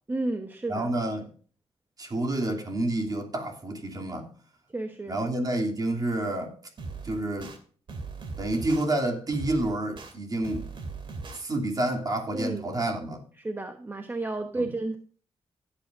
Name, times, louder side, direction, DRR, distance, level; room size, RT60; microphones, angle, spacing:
voice 1, 0.1-0.9 4.7-5.2 12.3-12.6 13.4-15.0, right 2 dB, 20° right, 1.1 m, -32 dB
voice 2, 0.7-1.3 2.0-4.3 5.1-6.5 7.0-7.5 8.4-10.7 11.3-13.2 14.5-14.7, right 1 dB, 35° right, 3.0 m, -29 dB
sound 1, 6.8-7.6 7.9-8.9 9.3-10.1 10.4-11.4, right 4 dB, 55° right, 2.6 m, -38 dB
16.0 x 8.9 x 2.6 m
cardioid pair, 105°, 11 cm